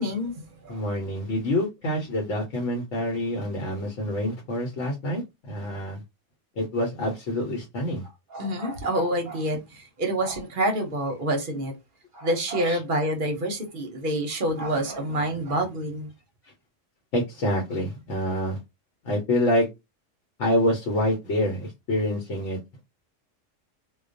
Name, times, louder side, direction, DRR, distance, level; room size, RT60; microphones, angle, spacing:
voice 1, 0.0-0.8 8.3-11.7 12.1-16.1, right 1 dB, 50° right, 0.7 m, -27 dB
voice 2, 0.7-6.0 6.6-8.0 12.6-12.8 17.1-18.6 19.0-19.7 20.4-22.6, left 1 dB, 75° left, 1.1 m, -26 dB
2.3 x 2.2 x 2.5 m
omnidirectional pair, 1.3 m